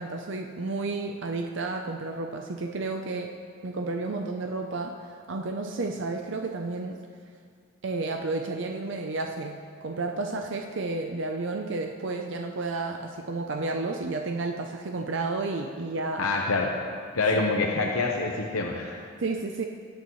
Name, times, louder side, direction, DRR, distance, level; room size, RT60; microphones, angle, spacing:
voice 1, 0.0-3.3 3.6-7.0 7.8-16.2 19.2-19.6, right 3 dB, 55° right, 3 dB, 0.6 m, -31 dB
voice 2, 16.2-16.7 17.1-19.0, left 3 dB, 80° left, 0 dB, 0.9 m, -26 dB
20.0 x 8.3 x 3.1 m, 2.1 s
head